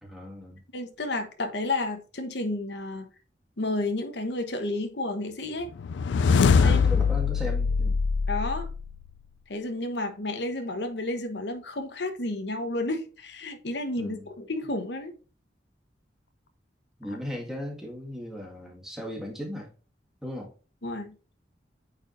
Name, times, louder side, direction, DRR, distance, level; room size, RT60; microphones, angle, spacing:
voice 1, 0.0-0.6 6.6-8.0 14.0-14.3 17.0-19.7 20.2-20.5, left 1 dB, 5° right, 1.9 m, -37 dB
voice 2, 0.7-3.1 3.6-5.7 6.6-6.8 8.3-8.7 9.5-15.1 20.8-21.1, left 2 dB, 70° left, 1.1 m, -31 dB
sound 1, 5.8-9.1, left 5 dB, 85° left, 0.4 m, -23 dB
8.7 x 4.8 x 2.6 m
head